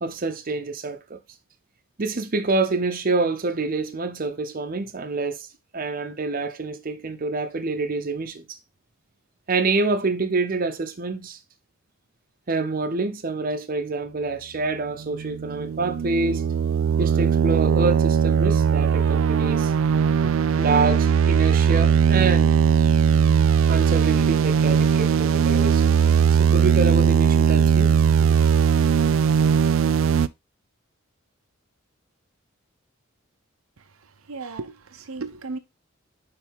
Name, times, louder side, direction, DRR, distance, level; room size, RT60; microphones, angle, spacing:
voice 1, 0.0-1.2 2.0-5.5 5.7-8.4 9.5-11.4 12.5-16.5 17.0-19.7 20.2-22.6 23.7-28.3, right 3 dB, 40° right, 0.7 m, -27 dB
sound 1, 15.1-30.3, right 7 dB, 65° right, 0.3 m, -19 dB
voice 2, 33.8-35.6, right 3 dB, 85° right, 0.7 m, -36 dB
9.3 x 3.4 x 3.5 m
head